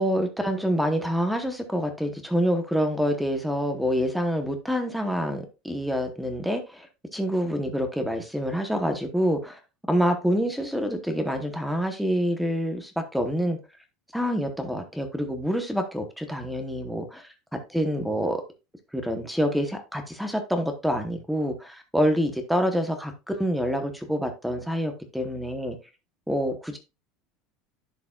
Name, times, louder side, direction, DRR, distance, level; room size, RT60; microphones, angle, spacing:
voice 1, 0.0-6.9 7.1-9.6 9.9-13.6 14.1-18.4 18.9-25.8 26.3-26.8, equal, ahead, 7 dB, 0.9 m, -27 dB
11.0 x 4.7 x 2.3 m, 0.27 s
cardioid pair, 155°, 0 cm